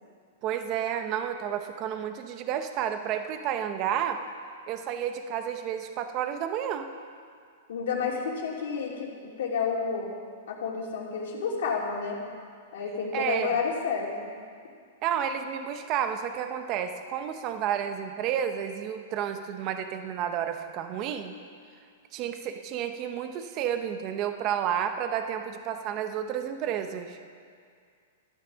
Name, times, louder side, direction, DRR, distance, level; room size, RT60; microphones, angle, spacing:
voice 1, 0.4-4.2 4.7-6.9 13.1-13.5 15.0-21.4 22.1-27.2, right 9 dB, 25° right, 7 dB, 0.8 m, -31 dB
voice 2, 7.7-10.1 10.5-12.2 12.7-14.3, left 5 dB, 60° left, -1 dB, 2.8 m, -30 dB
13.5 x 12.0 x 6.2 m, 2.2 s
supercardioid pair, 175°, 0 cm